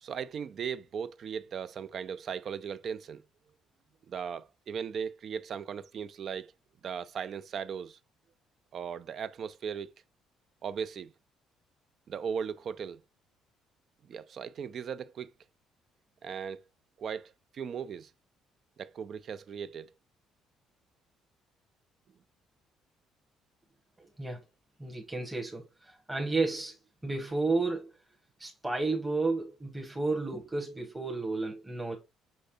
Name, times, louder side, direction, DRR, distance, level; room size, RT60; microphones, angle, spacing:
voice 1, 0.0-3.2 4.1-6.5 6.8-8.0 8.7-9.9 10.6-11.1 12.1-13.0 14.1-15.3 16.2-16.6 17.0-18.1 18.8-19.9, right 7 dB, 50° right, 0.4 m, -37 dB
voice 2, 24.8-26.8 27.0-27.9 28.4-32.0, right 3 dB, 15° right, 1.4 m, -32 dB
5.5 x 3.2 x 2.8 m
hypercardioid pair, 50°, 0 cm